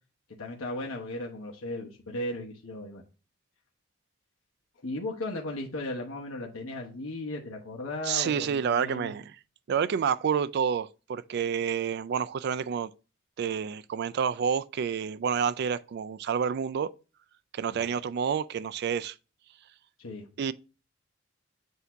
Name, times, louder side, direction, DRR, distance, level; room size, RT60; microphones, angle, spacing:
voice 1, 0.4-3.0 4.8-9.1 17.7-18.0 20.0-20.3, left 1 dB, 85° left, 1.0 m, -36 dB
voice 2, 8.0-9.4 9.7-12.9 13.4-16.9 17.5-19.2 20.4-20.5, right 7 dB, 50° right, 0.3 m, -29 dB
8.0 x 2.8 x 4.5 m
head